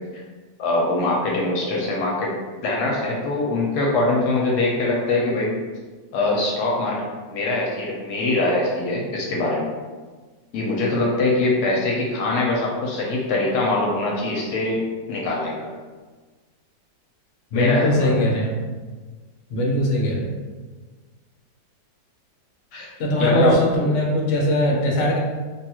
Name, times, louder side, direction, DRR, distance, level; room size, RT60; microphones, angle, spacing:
voice 1, 0.6-2.3 2.6-5.5 6.1-9.7 10.5-14.8 15.1-15.5 17.5-18.3 22.7-22.9 23.2-23.6, left 2 dB, 75° left, -3 dB, 1.1 m, -22 dB
voice 2, 17.5-18.6 19.5-20.3 23.0-25.2, equal, 55° left, -3 dB, 0.9 m, -21 dB
3.4 x 2.3 x 2.9 m, 1.4 s
omnidirectional pair, 1.8 m